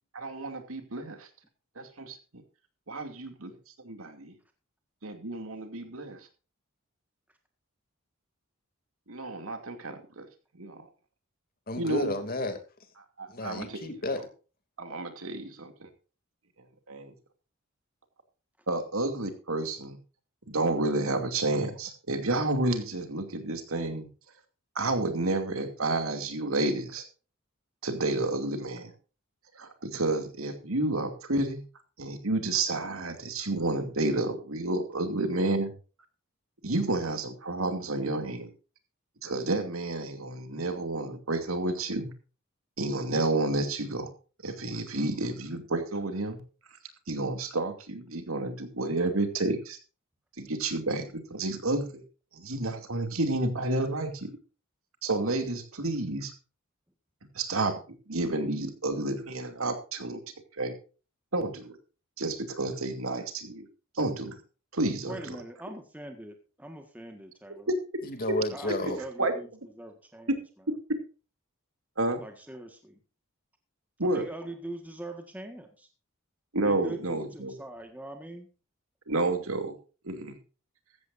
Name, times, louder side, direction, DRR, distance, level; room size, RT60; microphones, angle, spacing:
voice 1, 0.1-1.3 1.8-2.2 2.9-4.3 5.0-6.3 9.1-10.3 10.5-10.8 11.8-12.1 13.2-13.8 14.8-15.9 16.9-17.1 18.7-20.0 20.5-24.1 24.7-27.1 27.8-28.9 29.5-31.6 32.0-35.7 36.6-38.5 39.2-42.1 42.8-44.1 44.4-46.4 47.1-49.8 50.4-52.0 52.3-54.4 55.0-56.3 57.3-57.8 58.1-60.2 60.5-60.8 61.3-61.8 62.2-63.7 63.9-64.4 64.7-65.4 69.2-69.3 70.3-70.4 72.0-72.2 74.0-74.2 76.5-77.5 79.1-79.7 80.0-80.4, right 2 dB, 85° right, 6 dB, 2.7 m, -30 dB
voice 2, 11.7-12.6 13.3-14.3 68.0-69.0, left 1 dB, 45° left, 7 dB, 2.8 m, -31 dB
voice 3, 65.0-67.7 68.5-69.5 69.8-70.4 72.2-73.0 74.1-75.9 76.6-78.5, right 1 dB, 10° right, 4 dB, 1.6 m, -42 dB
15.0 x 14.5 x 2.6 m, 0.35 s
head